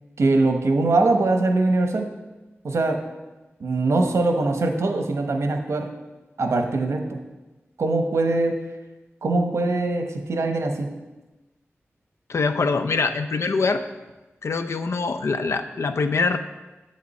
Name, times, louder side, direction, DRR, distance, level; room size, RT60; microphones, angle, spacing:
voice 1, 0.2-2.1 2.6-3.1 3.6-5.9 6.4-7.2 7.8-8.6 9.2-11.0, right 2 dB, 90° right, 4 dB, 1.0 m, -22 dB
voice 2, 12.3-13.8 14.4-16.4, left 4 dB, 75° left, 8 dB, 0.6 m, -23 dB
8.4 x 7.6 x 4.2 m, 1.1 s
wide cardioid pair, 95°, 5 cm